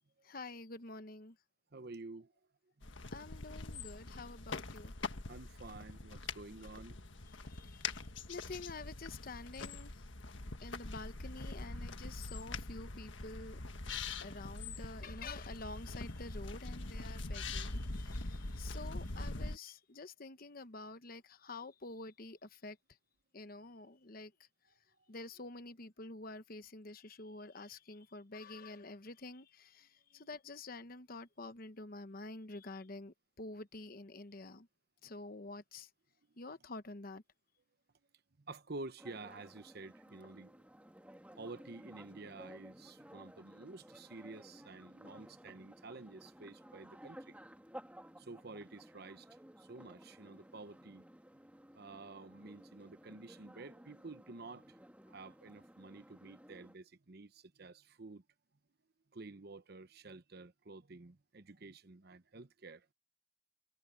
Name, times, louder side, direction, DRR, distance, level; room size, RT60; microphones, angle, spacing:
voice 1, 0.2-1.4 3.1-4.9 7.3-10.0 10.6-13.6 14.2-22.8 23.3-24.3 25.1-34.7 35.0-35.9 36.4-37.2, left 3 dB, 45° left, 1.0 m, -48 dB
voice 2, 1.7-2.3 5.3-7.1 14.2-14.3 30.1-30.3 38.4-40.5 41.4-47.4 48.2-51.1 51.7-54.8 55.1-58.2 59.1-62.9, right 3 dB, 55° right, 0.9 m, -50 dB
sound 1, 2.8-19.6, left 3 dB, 70° left, 1.6 m, -43 dB
sound 2, 39.0-56.8, equal, 5° right, 2.1 m, -56 dB
head